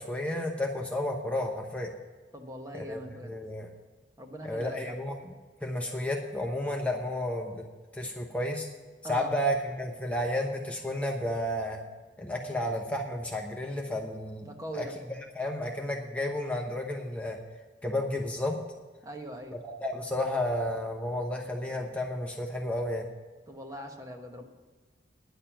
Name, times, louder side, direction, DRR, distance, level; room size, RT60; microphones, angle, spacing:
voice 1, 0.0-1.9 2.7-3.7 4.4-5.3 5.6-7.6 7.9-8.7 9.1-11.8 12.2-14.5 14.7-17.4 17.8-18.6 19.5-23.1, left 1 dB, 10° left, 1 dB, 0.9 m, -32 dB
voice 2, 2.3-3.3 4.2-5.0 9.0-9.3 14.4-14.9 19.0-19.6 23.5-24.4, right 1 dB, 20° right, 3 dB, 1.1 m, -41 dB
10.0 x 6.6 x 9.1 m, 1.4 s
head